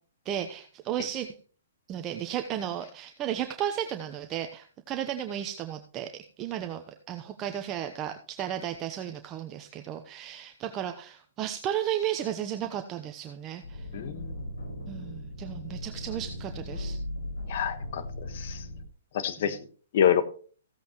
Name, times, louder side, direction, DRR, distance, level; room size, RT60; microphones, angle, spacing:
voice 1, 0.2-1.3 1.9-13.8 14.9-17.0, right 10 dB, 25° right, 0.9 m, -34 dB
sound 1, 13.6-18.8, left 1 dB, 75° left, 5.5 m, -38 dB
voice 2, 13.9-14.3 17.5-18.6 19.1-19.6 19.9-20.2, left 9 dB, 55° left, 1.3 m, -27 dB
15.5 x 8.4 x 3.0 m
hypercardioid pair, 140°, 0 cm